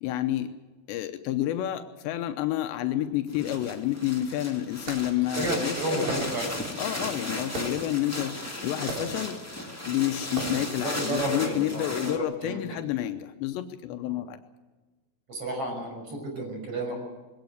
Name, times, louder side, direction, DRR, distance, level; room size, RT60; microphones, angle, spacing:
voice 1, 0.0-0.5 0.9-6.1 6.8-9.4 9.9-14.4, left 13 dB, 85° left, 8 dB, 3.1 m, -29 dB
sound 1, 3.3-12.2, left 1 dB, 10° left, 1.0 m, -36 dB
sound 2, 4.9-5.1 6.1-6.6 7.6-7.9 8.9-9.3 10.3-10.8, right 2 dB, 70° right, 5.9 m, -36 dB
voice 2, 5.4-6.5 10.3-12.8 14.1-14.2 15.3-17.0, right 2 dB, 30° right, 2 dB, 7.1 m, -32 dB
22.5 x 18.0 x 7.9 m, 1.2 s
omnidirectional pair, 5.0 m